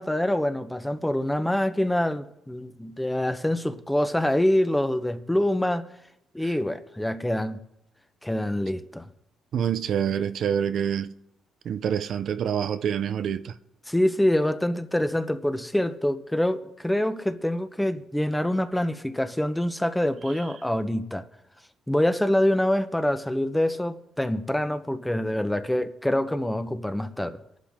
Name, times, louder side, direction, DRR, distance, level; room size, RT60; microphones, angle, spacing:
voice 1, 0.0-5.8 6.3-7.6 8.2-9.1 13.9-21.2 21.9-27.4, left 1 dB, 5° left, 1.0 m, -25 dB
voice 2, 9.5-11.1 11.6-13.5, right 8 dB, 65° right, 0.7 m, -26 dB
23.5 x 11.5 x 3.7 m
cardioid pair, 90°, 0 cm